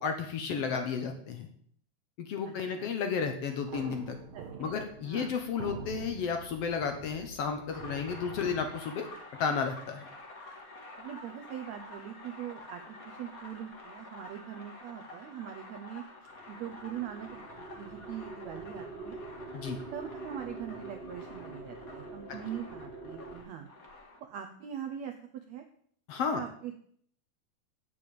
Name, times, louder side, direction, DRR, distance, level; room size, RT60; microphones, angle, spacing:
voice 1, 0.0-1.5 2.2-4.2 4.6-9.1 9.4-10.0 19.5-19.8 26.1-26.4, left 6 dB, 70° left, 6 dB, 1.5 m, -32 dB
voice 2, 2.4-2.9 4.3-4.7 5.0-5.4 10.9-19.2 19.9-23.7 24.2-25.1 25.5-25.6 26.2-26.7, right 10 dB, 80° right, 5 dB, 1.6 m, -42 dB
sound 1, 3.6-8.7, right 4 dB, 55° right, 2.6 m, -45 dB
sound 2, 7.7-24.2, left 2 dB, 35° left, 1.4 m, -49 dB
sound 3, 16.3-23.4, right 3 dB, 20° right, 1.7 m, -45 dB
8.6 x 6.8 x 8.6 m, 0.62 s
omnidirectional pair, 4.1 m